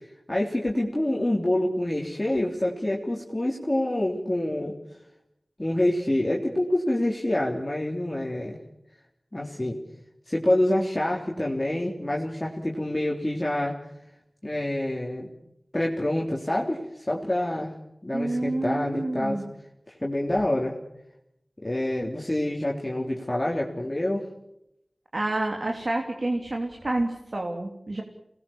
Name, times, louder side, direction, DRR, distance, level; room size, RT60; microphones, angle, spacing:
voice 1, 0.3-4.7 5.6-8.6 9.3-9.8 10.3-13.8 14.4-15.3 15.7-17.7 18.0-19.4 20.0-20.7 21.6-24.2, left 1 dB, 25° left, -2 dB, 3.6 m, -26 dB
voice 2, 18.1-19.4 25.1-28.0, right 2 dB, 55° right, 2 dB, 3.3 m, -28 dB
28.5 x 20.5 x 7.4 m, 0.82 s
wide cardioid pair, 70°, 0 cm